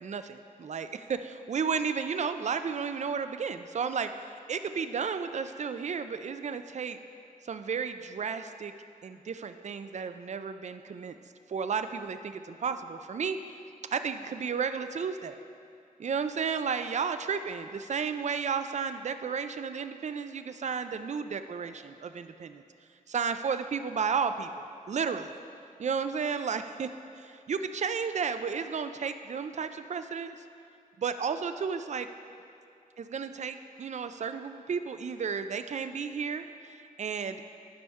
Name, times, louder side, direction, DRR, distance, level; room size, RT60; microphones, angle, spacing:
voice 1, 0.0-7.0 7.4-8.7 9.0-11.2 11.5-13.4 13.9-15.4 16.0-22.6 23.1-25.4 25.8-26.9 27.2-30.4 31.0-32.1 33.0-37.4, right 6 dB, 55° right, 9 dB, 0.4 m, -33 dB
11.0 x 5.4 x 3.5 m, 2.6 s
wide cardioid pair, 95°, 15 cm